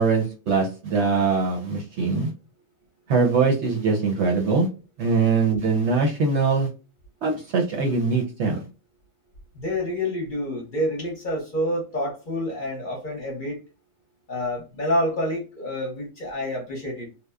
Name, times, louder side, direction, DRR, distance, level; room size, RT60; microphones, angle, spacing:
voice 1, 0.0-2.3 3.1-4.7 5.0-6.7 7.2-8.6, right 4 dB, 60° right, 1 dB, 0.8 m, -22 dB
voice 2, 9.5-13.6 14.3-17.1, left 1 dB, 40° left, -1 dB, 0.8 m, -28 dB
2.8 x 2.0 x 2.2 m, 0.32 s
omnidirectional pair, 1.5 m